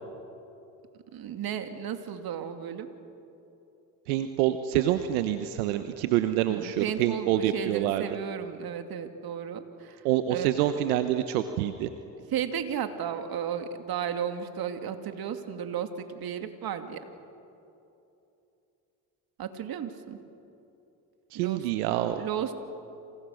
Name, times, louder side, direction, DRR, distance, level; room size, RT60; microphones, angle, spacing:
voice 1, 1.1-2.9 6.5-10.0 10.3-10.5 12.3-17.0 19.4-20.2 21.3-21.7 22.2-22.5, right 8 dB, 55° right, 7 dB, 2.6 m, -34 dB
voice 2, 4.1-8.0 10.0-11.9 21.3-22.3, right 12 dB, 85° right, 9 dB, 1.1 m, -27 dB
29.5 x 27.5 x 6.5 m, 2.8 s
hypercardioid pair, 65°, 43 cm